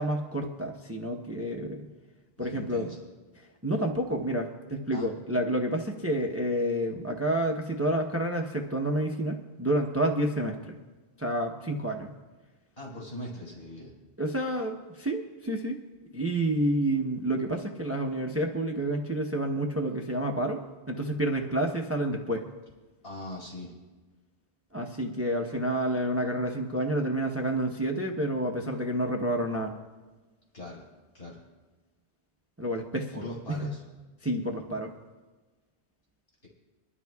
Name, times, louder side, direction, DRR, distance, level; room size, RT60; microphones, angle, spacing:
voice 1, 0.0-1.9 2.4-2.9 3.4-10.8 11.2-12.1 14.2-15.8 16.1-22.4 24.7-29.7 32.6-33.7 34.2-34.9, right 1 dB, 15° right, 2 dB, 0.8 m, -29 dB
voice 2, 2.4-3.0 4.9-5.1 12.8-13.9 23.0-23.7 30.5-30.8 31.1-31.4 33.1-33.8, left 1 dB, 60° left, -5 dB, 4.7 m, -40 dB
25.0 x 12.5 x 2.3 m, 1.2 s
omnidirectional pair, 1.1 m